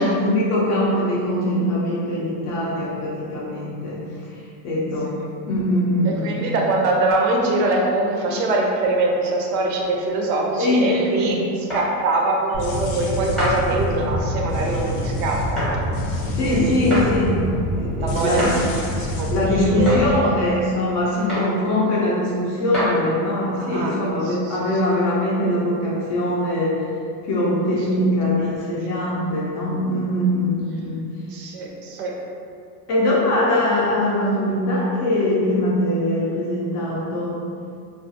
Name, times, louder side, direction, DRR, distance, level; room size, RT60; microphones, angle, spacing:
voice 1, 0.0-4.0 4.6-5.1 5.5-6.5 10.6-11.3 16.4-17.4 17.7-18.6 19.3-26.8 27.3-31.0 32.9-37.4, left 1 dB, 35° left, -6 dB, 0.4 m, -22 dB
voice 2, 6.1-11.4 11.7-15.8 16.4-16.7 18.0-20.3 21.3-21.4 23.6-24.0 24.2-24.6 28.2-28.6 31.3-32.2, right 2 dB, 75° right, 0 dB, 0.6 m, -23 dB
sound 1, 11.7-11.9 13.4-13.6 15.6-15.7 16.9-17.1 18.4-18.6 19.9-20.0 21.3-21.5 22.7-22.9, equal, ahead, 0.7 m, -25 dB
sound 2, 12.5-20.2, equal, 90° left, 0.6 m, -26 dB
2.3 x 2.3 x 2.6 m, 2.4 s
supercardioid pair, 135°, 49 cm